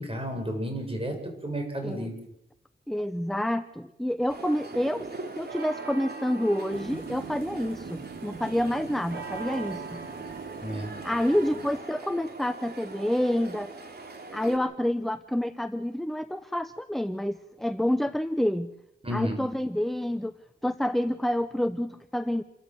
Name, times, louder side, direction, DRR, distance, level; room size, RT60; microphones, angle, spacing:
voice 1, 0.0-2.1 10.6-10.9 19.0-19.4, equal, 25° right, 4 dB, 7.0 m, -32 dB
voice 2, 2.9-5.1 5.4-10.0 11.0-13.7 14.3-18.7 19.1-20.3 20.6-22.4, left 1 dB, ahead, 11 dB, 0.8 m, -28 dB
sound 1, 4.3-14.6, right 4 dB, 50° right, 3.7 m, -40 dB
sound 2, 6.7-11.8, right 5 dB, 75° right, 2.5 m, -44 dB
28.5 x 14.0 x 7.9 m, 0.84 s
cardioid pair, 70°, 20 cm